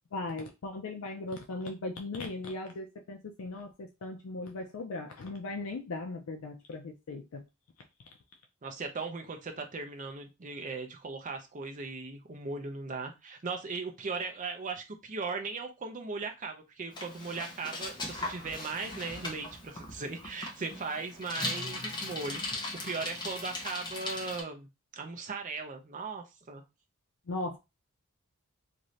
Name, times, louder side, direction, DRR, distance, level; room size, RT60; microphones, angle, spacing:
voice 1, 0.1-7.4 27.3-27.6, left 2 dB, 65° left, 0.4 m, -38 dB
voice 2, 8.6-24.7 24.9-26.6, right 4 dB, 35° right, 0.5 m, -38 dB
Bicycle, 16.9-24.4, left 2 dB, 20° left, 0.6 m, -39 dB
2.7 x 2.6 x 3.1 m
head